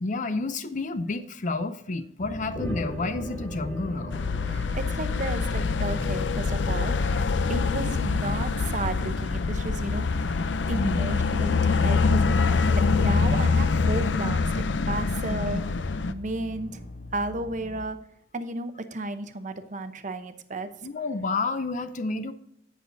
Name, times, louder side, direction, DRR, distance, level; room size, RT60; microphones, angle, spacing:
voice 1, 0.0-4.2 7.6-7.7 10.7-11.0 15.3-15.6 20.8-22.3, left 3 dB, 45° left, 11 dB, 0.6 m, -30 dB
sound 1, 2.2-17.9, left 3 dB, 70° left, 2.0 m, -39 dB
sound 2, 2.5-7.2, equal, 15° left, 2.4 m, -40 dB
sound 3, 4.1-16.1, left 4 dB, 85° left, 0.6 m, -25 dB
voice 2, 4.4-7.2 7.5-10.2 10.7-15.6 16.1-16.8 17.1-18.0 18.3-20.7, right 2 dB, 45° right, 9 dB, 0.8 m, -33 dB
17.5 x 6.3 x 2.7 m, 0.75 s
head